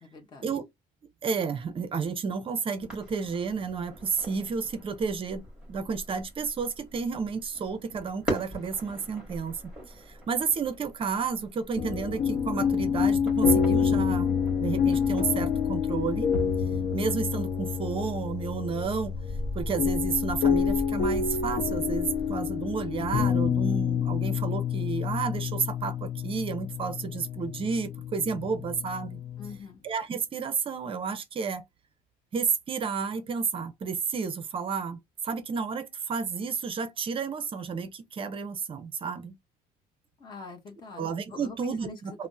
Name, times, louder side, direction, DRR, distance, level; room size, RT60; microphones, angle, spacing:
voice 1, 0.0-0.4 29.4-29.8 40.2-41.0 41.3-42.0, left 4 dB, 25° left, 0.9 m, -43 dB
voice 2, 1.2-9.6 9.9-16.3 16.9-19.1 19.5-29.2 29.8-31.6 32.3-39.4 41.0-42.3, right 5 dB, 35° right, 0.6 m, -31 dB
sound 1, 2.8-22.3, equal, 5° right, 1.7 m, -41 dB
sound 2, 11.8-29.6, left 7 dB, 65° left, 0.6 m, -28 dB
3.3 x 2.0 x 2.6 m
cardioid pair, 140°, 17 cm